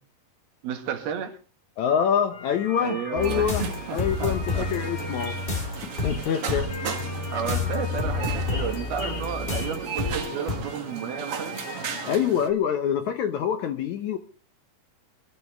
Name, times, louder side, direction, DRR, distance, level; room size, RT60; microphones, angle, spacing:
voice 1, 0.6-1.3 2.8-4.7 6.5-6.7 7.3-11.6, right 8 dB, 90° right, 5 dB, 3.7 m, -32 dB
voice 2, 1.8-3.6 3.9-5.4 5.8-6.9 12.1-14.2, left 8 dB, 70° left, 8 dB, 1.8 m, -26 dB
sound 1, 2.3-12.2, left 3 dB, 45° left, 1.8 m, -40 dB
sound 2, 3.2-10.6, left 3 dB, 15° left, 2.2 m, -30 dB
sound 3, 3.2-12.5, right 8 dB, 55° right, 1.7 m, -37 dB
24.0 x 12.5 x 3.5 m, 0.39 s
omnidirectional pair, 4.3 m